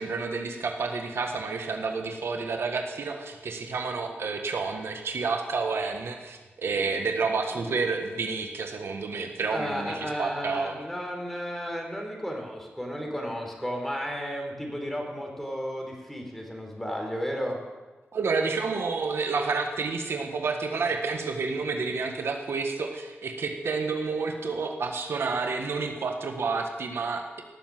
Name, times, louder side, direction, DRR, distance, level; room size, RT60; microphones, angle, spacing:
voice 1, 0.0-10.8 18.1-27.4, right 4 dB, 70° right, 4 dB, 1.5 m, -30 dB
voice 2, 9.5-17.6, equal, 5° left, 1 dB, 3.8 m, -33 dB
17.5 x 7.1 x 7.7 m, 1.2 s
cardioid pair, 70°, 4 cm